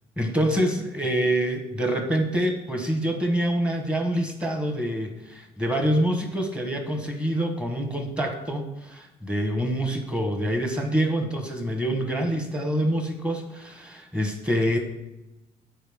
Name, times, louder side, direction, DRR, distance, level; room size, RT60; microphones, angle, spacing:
voice 1, 0.2-14.8, right 1 dB, 5° right, 4 dB, 1.2 m, -26 dB
7.6 x 4.7 x 3.6 m, 0.99 s
cardioid pair, 110°, 17 cm